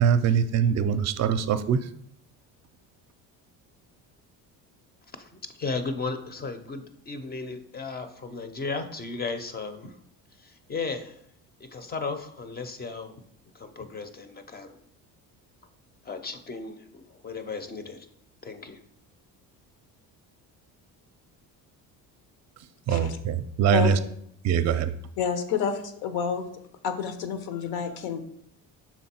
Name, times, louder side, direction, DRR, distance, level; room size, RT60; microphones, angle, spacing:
voice 1, 0.0-1.8 22.9-24.0 24.4-24.9, right 7 dB, 45° right, 0.5 m, -23 dB
voice 2, 5.2-9.9 10.4-11.2 11.6-13.1 13.5-14.8 16.0-18.1 18.4-18.8, left 4 dB, 25° left, 0.5 m, -35 dB
voice 3, 25.2-26.5 26.8-28.2, left 7 dB, 85° left, 0.9 m, -29 dB
6.0 x 3.8 x 4.3 m
cardioid pair, 130°, 37 cm